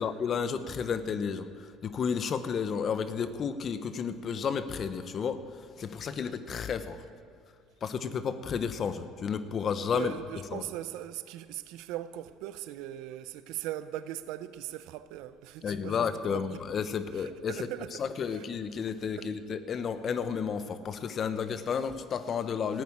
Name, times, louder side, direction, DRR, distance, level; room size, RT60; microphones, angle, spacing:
voice 1, 0.0-1.4 1.8-5.4 5.8-7.0 7.8-10.1 10.5-10.6 15.6-17.5 18.0-22.8, left 6 dB, 45° left, 1.0 m, -32 dB
voice 2, 9.9-16.6 17.1-18.0 18.3-18.5 19.2-19.3, right 13 dB, 75° right, 0.6 m, -40 dB
14.5 x 9.3 x 8.7 m
supercardioid pair, 75°, 0 cm